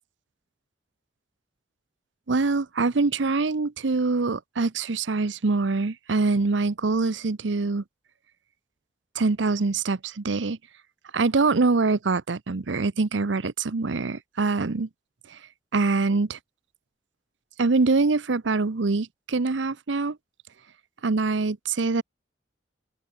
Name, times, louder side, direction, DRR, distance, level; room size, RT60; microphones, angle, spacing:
voice 1, 2.3-7.8 9.1-10.6 11.1-14.9 15.3-15.4 15.7-16.4 17.6-20.2 21.0-22.0, right 3 dB, 80° right, 0.8 m, -24 dB
open air
head